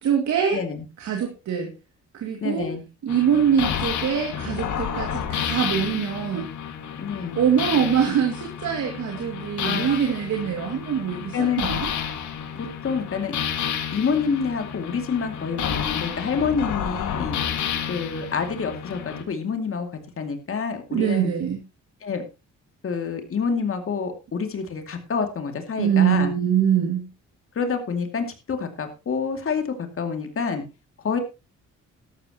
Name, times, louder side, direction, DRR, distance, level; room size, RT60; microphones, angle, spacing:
voice 1, 0.0-0.6 1.0-1.7 2.1-2.7 3.0-6.5 7.4-11.9 20.9-21.6 25.8-27.1, right 8 dB, 65° right, 2 dB, 2.4 m, -23 dB
voice 2, 0.5-0.8 2.4-2.8 7.0-7.4 9.6-10.0 11.3-11.6 12.5-13.3 13.9-17.4 17.9-19.9 20.2-21.3 22.0-22.2 22.8-26.3 27.6-30.6 31.0-31.2, left 5 dB, 45° left, 6 dB, 2.5 m, -27 dB
sound 1, 3.1-19.2, left 8 dB, 75° left, 2.1 m, -30 dB
13.0 x 12.0 x 3.0 m, 0.28 s
cardioid pair, 90°, 30 cm